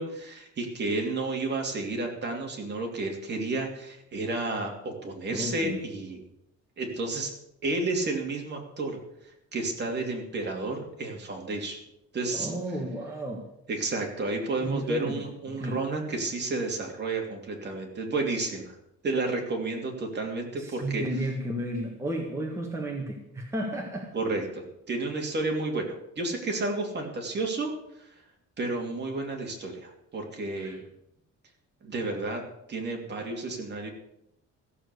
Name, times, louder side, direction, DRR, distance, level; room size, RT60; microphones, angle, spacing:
voice 1, 0.0-6.2 6.8-7.3 7.6-9.0 9.5-11.8 12.1-12.5 13.7-18.8 19.0-21.0 24.1-28.1 28.6-30.8 31.8-32.4 32.7-33.9, right 2 dB, 35° right, 1 dB, 2.8 m, -31 dB
voice 2, 5.3-5.8 12.3-13.5 14.6-15.2 15.6-15.8 20.6-24.1 30.5-30.8, right 1 dB, 10° right, 0 dB, 1.7 m, -33 dB
15.5 x 7.4 x 8.3 m, 0.80 s
cardioid pair, 160°, 29 cm